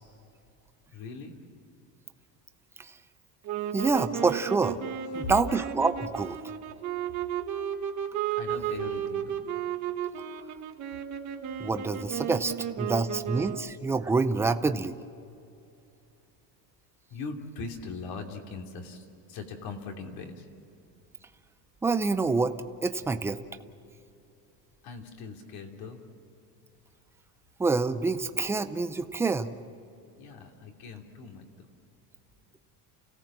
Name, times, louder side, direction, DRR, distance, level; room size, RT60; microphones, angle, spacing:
voice 1, 0.9-1.4 5.2-5.3 8.3-9.4 17.1-20.5 24.8-26.0 30.2-31.4, left 4 dB, 60° left, 2 dB, 2.9 m, -40 dB
sound 1, 3.4-13.8, right 9 dB, 40° right, 1.6 m, -34 dB
voice 2, 3.7-4.8 5.1-6.4 11.6-15.0 21.8-22.5 22.8-23.4 27.6-29.5, right 4 dB, 5° right, 9 dB, 0.5 m, -27 dB
29.5 x 17.0 x 7.4 m, 2.6 s
cardioid pair, 165°, 42 cm